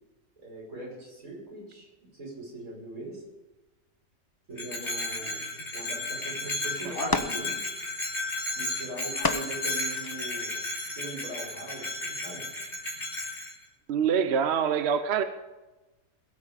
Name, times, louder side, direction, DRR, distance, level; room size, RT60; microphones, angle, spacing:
voice 1, 0.4-3.2 4.5-5.4 5.7-7.6 8.5-10.6 10.9-12.5, right 2 dB, 90° right, -3 dB, 6.0 m, -41 dB
Bell, 4.5-13.5, left 2 dB, 55° left, 3.5 m, -34 dB
sound 1, 6.7-7.6 8.9-10.1 10.9-11.0 11.5-11.6, left 3 dB, 20° left, 0.7 m, -31 dB
voice 2, 13.9-15.2, right 7 dB, 55° right, 10 dB, 1.0 m, -25 dB
21.5 x 8.7 x 5.2 m, 1.1 s
omnidirectional pair, 1.4 m